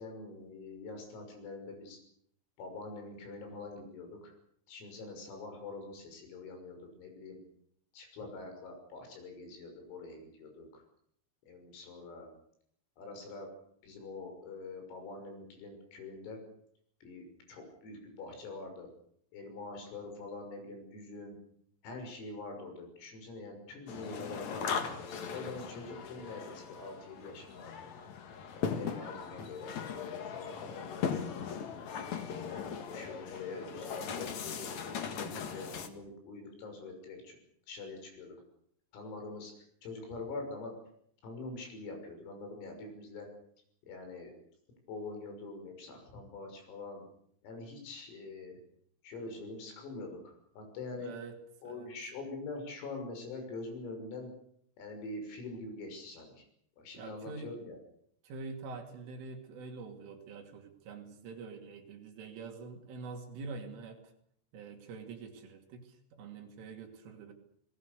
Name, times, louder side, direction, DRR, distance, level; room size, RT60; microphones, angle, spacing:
voice 1, 0.0-2.0 2.6-4.3 4.7-7.4 7.9-10.8 11.5-12.3 13.0-13.5 13.8-16.4 17.0-18.9 19.3-21.4 21.8-24.8 25.3-27.7 28.5-31.2 32.1-34.7 35.1-37.4 37.7-38.4 38.9-39.5 39.8-40.7 41.2-43.3 43.9-44.4 44.9-47.0 47.4-48.6 49.0-51.1 51.6-54.3 54.8-56.5 56.8-57.8, left 3 dB, 80° left, 4 dB, 8.9 m, -44 dB
sound 1, 23.9-35.9, left 6 dB, 55° left, 2.0 m, -39 dB
voice 2, 51.0-51.4 51.6-51.9 57.0-57.5 58.2-64.0 64.5-67.3, right 4 dB, 70° right, 4 dB, 5.2 m, -45 dB
29.5 x 19.5 x 6.8 m, 0.68 s
omnidirectional pair, 6.0 m